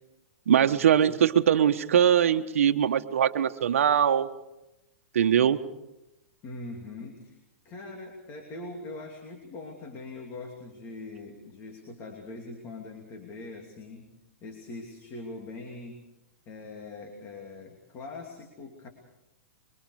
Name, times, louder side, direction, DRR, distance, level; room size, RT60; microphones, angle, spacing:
voice 1, 0.5-4.3 5.1-5.6, right 9 dB, 75° right, 7 dB, 1.3 m, -22 dB
voice 2, 6.4-7.4 7.6-14.1 14.4-16.0 16.4-18.9, left 2 dB, 30° left, 2 dB, 2.9 m, -42 dB
25.0 x 23.5 x 4.9 m, 0.94 s
hypercardioid pair, 145°, 7 cm